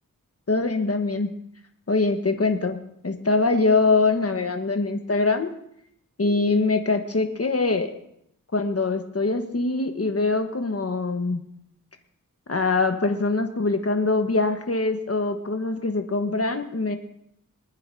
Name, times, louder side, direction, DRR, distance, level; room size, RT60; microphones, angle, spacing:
voice 1, 0.5-1.3 1.9-2.8 3.0-5.5 6.2-7.9 8.5-11.4 12.5-17.0, left 3 dB, 45° left, 6 dB, 1.3 m, -23 dB
24.0 x 9.8 x 2.8 m, 0.74 s
wide cardioid pair, 70°, 33 cm